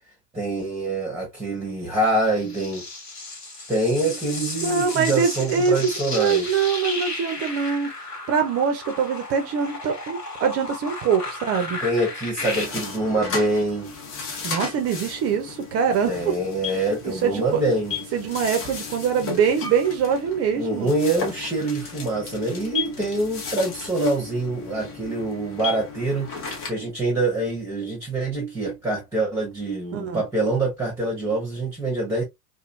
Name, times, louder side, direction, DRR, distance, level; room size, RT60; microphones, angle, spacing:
voice 1, 0.3-2.8 3.7-6.6 11.8-13.9 16.1-18.0 19.2-19.3 20.6-26.3 26.7-32.2, right 2 dB, 5° right, 0.9 m, -25 dB
sound 1, 2.0-12.7, left 2 dB, 85° left, 1.2 m, -34 dB
voice 2, 4.6-11.8 12.6-12.7 14.4-16.3 17.0-17.6 18.1-20.9 29.9-30.2, right 6 dB, 30° right, 0.6 m, -24 dB
sound 2, 12.4-26.7, left 5 dB, 30° left, 0.8 m, -35 dB
3.0 x 2.4 x 2.4 m
figure-of-eight pair, 80°, 46 cm